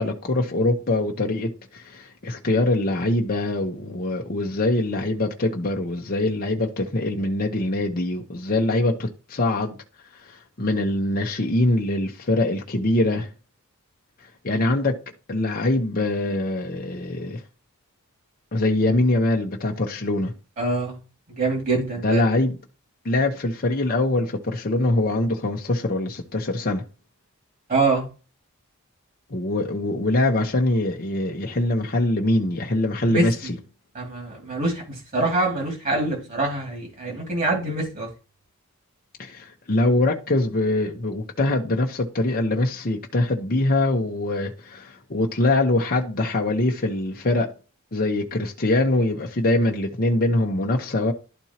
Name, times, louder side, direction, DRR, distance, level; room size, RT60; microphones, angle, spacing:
voice 1, 0.0-9.7 10.1-13.3 14.4-15.0 15.3-17.4 18.5-20.3 22.0-22.6 23.0-26.8 29.3-33.6 39.2-47.5 47.9-51.1, left 2 dB, 40° left, 0.9 m, -23 dB
voice 2, 20.6-21.0 21.4-22.2 27.7-28.1 33.1-33.5 33.9-38.1, right 2 dB, 40° right, 2.4 m, -25 dB
12.0 x 4.4 x 2.9 m
head